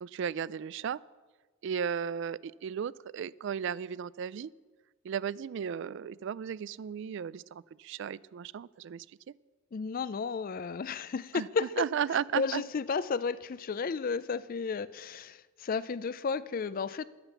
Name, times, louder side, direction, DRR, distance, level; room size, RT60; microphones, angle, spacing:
voice 1, 0.0-1.0 1.6-4.5 5.0-9.1 11.3-11.5 11.8-12.6, right 7 dB, 60° right, 0.3 m, -35 dB
voice 2, 9.7-11.9 12.4-17.0, left 5 dB, 45° left, 0.4 m, -33 dB
11.5 x 8.9 x 7.1 m
head